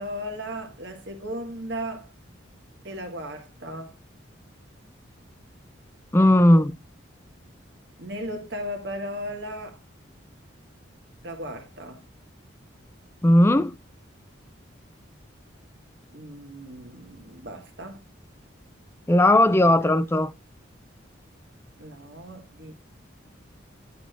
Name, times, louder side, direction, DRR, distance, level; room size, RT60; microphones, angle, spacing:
voice 1, 0.0-2.1 2.8-3.9 8.0-9.8 11.2-12.0 16.1-18.1 21.8-22.7, equal, 60° right, 1.4 m, -36 dB
voice 2, 6.1-6.8 13.2-13.8 19.1-20.3, left 1 dB, 10° left, 0.4 m, -17 dB
8.5 x 8.3 x 2.3 m
head